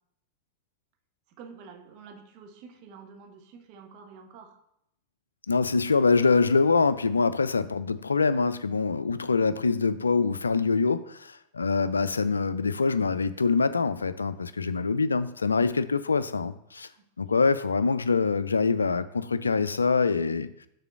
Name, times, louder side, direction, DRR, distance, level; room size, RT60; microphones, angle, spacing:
voice 1, 1.3-4.6 16.9-17.1, right 5 dB, 45° right, 5 dB, 1.1 m, -48 dB
voice 2, 5.5-16.9 17.2-20.5, left 4 dB, 75° left, 14 dB, 0.3 m, -24 dB
6.6 x 3.8 x 6.2 m, 0.77 s
figure-of-eight pair, 90°, 0 cm